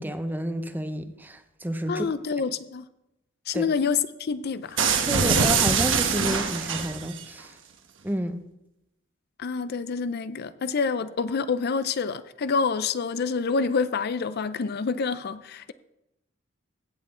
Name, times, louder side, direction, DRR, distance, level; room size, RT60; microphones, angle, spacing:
voice 1, 0.0-2.1 3.5-3.7 5.1-7.5 8.0-8.4, right 1 dB, 10° right, 0.6 m, -30 dB
voice 2, 1.9-2.9 3.5-4.8 9.4-15.7, left 5 dB, 50° left, 0.5 m, -27 dB
sound 1, 4.8-7.2, right 5 dB, 65° right, 1.2 m, -23 dB
16.0 x 8.2 x 3.7 m
head